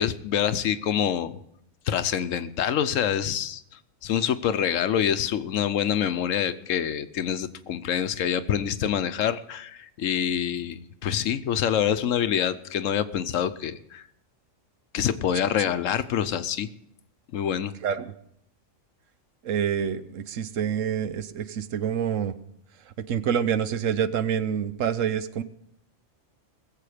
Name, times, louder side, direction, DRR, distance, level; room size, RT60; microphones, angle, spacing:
voice 1, 0.0-1.4 1.9-3.6 4.0-14.0 14.9-16.7 17.3-17.7, left 9 dB, 75° left, 13 dB, 1.1 m, -26 dB
voice 2, 17.8-18.1 19.4-22.3 23.1-25.4, right 8 dB, 75° right, 13 dB, 1.1 m, -27 dB
20.0 x 7.7 x 5.0 m, 0.74 s
omnidirectional pair, 1.4 m